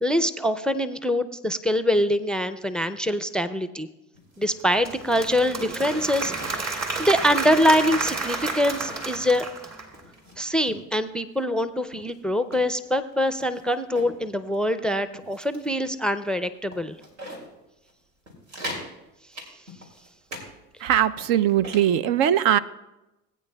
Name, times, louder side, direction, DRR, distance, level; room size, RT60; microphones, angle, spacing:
voice 1, 0.0-3.9 4.4-9.5 10.4-17.0, equal, ahead, 12 dB, 0.4 m, -24 dB
sound 1, 4.1-4.8 5.2-5.3 5.8-6.8 7.0-7.2 7.4-8.2 8.6-9.5 9.9-10.8 11.4-11.5 11.9-14.2 14.5-14.7 15.1-15.8 16.2-16.3 16.7-17.5 17.9-18.0 18.3-18.9 19.3-20.5 20.8-21.9, equal, 85° right, 2.8 m, -41 dB
Applause / Crowd, 4.6-10.0, right 3 dB, 45° right, 2.8 m, -31 dB
voice 2, 20.8-22.6, right 10 dB, 65° right, 16 dB, 0.6 m, -20 dB
20.0 x 9.1 x 2.2 m, 0.96 s
hypercardioid pair, 80°, 37 cm